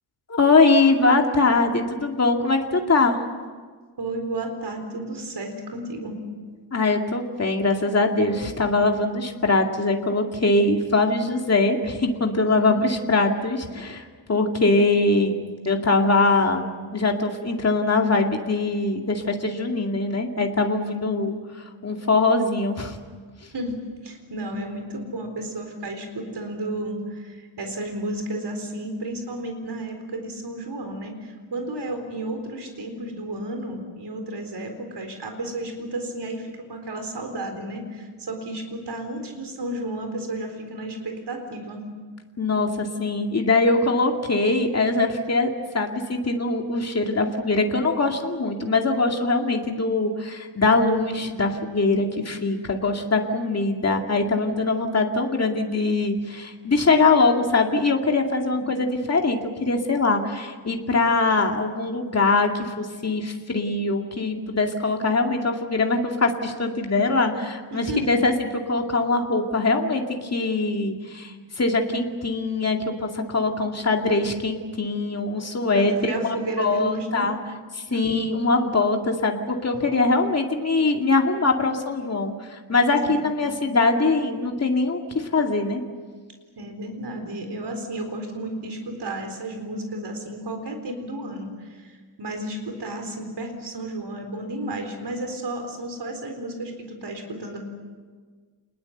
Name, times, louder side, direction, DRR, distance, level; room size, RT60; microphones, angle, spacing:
voice 1, 0.3-3.2 6.7-21.3 21.8-23.0 42.4-45.5 45.7-77.4 77.7-85.8, left 3 dB, 35° left, 2 dB, 2.4 m, -22 dB
voice 2, 4.0-6.2 23.5-23.8 24.0-41.9 58.5-58.6 67.7-68.2 75.7-77.3 77.9-78.1 83.0-83.1 83.4-83.7 86.6-97.6, right 1 dB, 60° right, 4 dB, 4.1 m, -32 dB
28.5 x 20.5 x 8.0 m, 1.5 s
wide cardioid pair, 150°, 46 cm